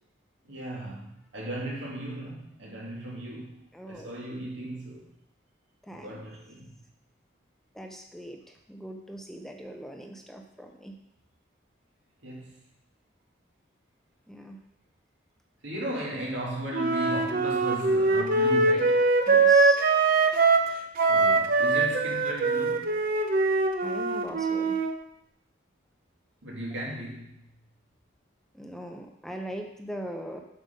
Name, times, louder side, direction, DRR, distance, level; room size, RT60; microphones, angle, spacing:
voice 1, 0.4-5.1 5.9-6.8 12.2-12.6 15.6-19.1 21.0-23.0 26.4-27.5, right 1 dB, 80° right, -3 dB, 2.6 m, -36 dB
voice 2, 3.7-4.1 5.8-6.1 7.7-8.4 8.7-11.0 14.3-14.6 19.3-19.8 23.8-24.8 28.5-30.4, right 1 dB, ahead, 3 dB, 0.6 m, -40 dB
Wind instrument woodwind instrument, 16.7-20.7 21.0-24.9, right 3 dB, 50° right, 0.7 m, -23 dB
7.4 x 6.0 x 5.2 m, 0.78 s
head